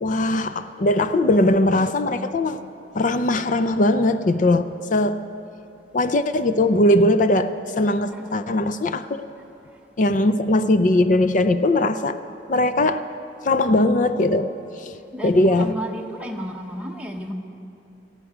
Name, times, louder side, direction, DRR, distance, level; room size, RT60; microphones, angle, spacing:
voice 1, 0.0-2.6 2.9-5.2 5.9-9.2 10.0-12.2 12.5-13.0 13.4-14.5 14.8-15.0 15.2-15.7, left 1 dB, 45° left, 11 dB, 0.5 m, -20 dB
voice 2, 8.0-8.4 15.1-17.3, equal, 5° right, 1 dB, 1.1 m, -33 dB
18.0 x 14.5 x 5.0 m, 2.9 s
head